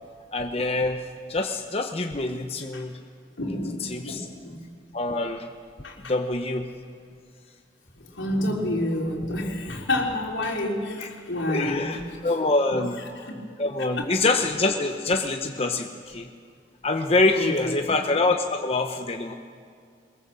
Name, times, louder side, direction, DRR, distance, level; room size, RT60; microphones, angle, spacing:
voice 1, 0.3-1.0 1.3-3.0 3.5-4.3 4.9-5.5 6.0-6.7 11.0-11.1 11.5-13.0 13.6-16.3 16.8-19.3, left 2 dB, 30° left, 4 dB, 0.9 m, -25 dB
voice 2, 3.4-4.7 5.8-6.1 8.0-12.3 13.0-13.3 14.0-14.1 17.3-18.0, left 1 dB, 85° left, 0 dB, 3.8 m, -29 dB
23.0 x 21.5 x 7.5 m, 2.3 s
head